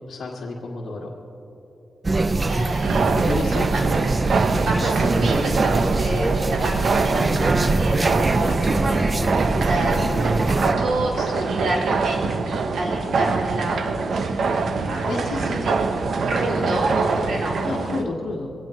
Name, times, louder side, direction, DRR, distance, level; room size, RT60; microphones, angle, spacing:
voice 1, 0.1-1.1 3.1-3.8 4.4-4.6 11.2-11.4 15.1-15.6 17.6-18.5, left 3 dB, 60° left, -6 dB, 1.7 m, -30 dB
sound 1, 2.0-10.7, right 2 dB, 25° right, 0.5 m, -23 dB
voice 2, 2.4-3.1 3.7-3.8 4.6-15.7 16.2-17.7, right 2 dB, 85° right, -3 dB, 3.4 m, -28 dB
sound 2, 2.8-18.1, right 4 dB, 65° right, 0.9 m, -24 dB
sound 3, 3.0-17.4, left 1 dB, ahead, 2.8 m, -41 dB
23.0 x 17.0 x 3.2 m, 3.0 s
wide cardioid pair, 120°, 0 cm